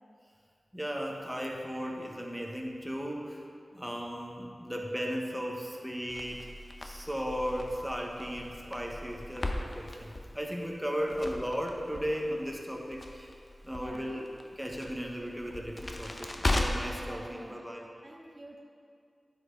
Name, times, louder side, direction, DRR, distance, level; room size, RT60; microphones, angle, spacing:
voice 1, 0.7-3.5 3.7-6.5 6.8-13.3 13.6-14.3 14.6-17.9, equal, 5° right, 0 dB, 1.1 m, -36 dB
Crackle, 6.1-17.0, left 1 dB, 45° left, 0.7 m, -37 dB
voice 2, 13.7-14.1 16.9-17.6 18.0-18.6, right 1 dB, 30° right, -1 dB, 0.8 m, -48 dB
9.8 x 5.4 x 3.8 m, 2.2 s
cardioid pair, 45°, 0 cm